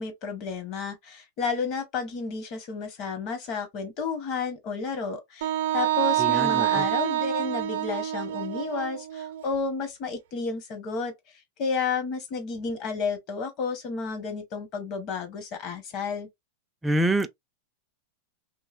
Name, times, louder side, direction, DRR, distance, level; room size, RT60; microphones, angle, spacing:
voice 1, 0.0-11.1 11.6-16.3, left 5 dB, 40° left, 0.9 m, -31 dB
Wind instrument woodwind instrument, 5.4-9.4, right 13 dB, 75° right, 0.5 m, -27 dB
voice 2, 6.2-6.8 16.8-17.3, right 1 dB, 10° right, 0.3 m, -26 dB
3.0 x 2.7 x 2.4 m
supercardioid pair, 145°, 0 cm